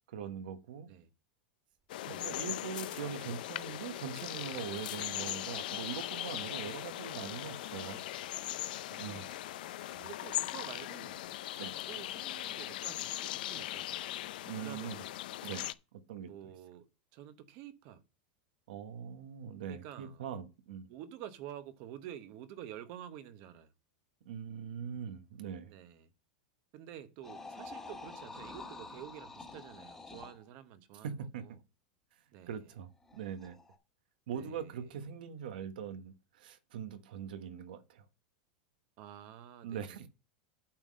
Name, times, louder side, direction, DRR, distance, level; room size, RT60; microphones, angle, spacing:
voice 1, 0.1-0.9 2.0-8.0 9.0-9.3 11.5-11.7 14.4-15.0 15.4-16.3 18.7-20.9 24.2-25.7 31.0-31.4 32.5-33.6 34.3-38.1 39.6-40.1, right 8 dB, 80° right, 1.1 m, -42 dB
Water tap faucet, 1.8-11.5 11.7-11.8, right 1 dB, 10° right, 1.6 m, -62 dB
sound 1, 1.9-15.7, left 15 dB, 75° left, 0.5 m, -39 dB
voice 2, 8.9-9.4 9.9-11.2 11.9-14.1 14.5-15.0 16.2-18.0 19.7-20.2 20.9-23.7 25.6-26.1 26.7-31.5 32.3-32.5 34.3-34.9 39.0-40.1, right 11 dB, 45° right, 0.9 m, -49 dB
sound 2, 27.2-30.4 33.0-33.8, left 3 dB, 10° left, 1.2 m, -48 dB
8.7 x 3.9 x 6.3 m
supercardioid pair, 150°, 5 cm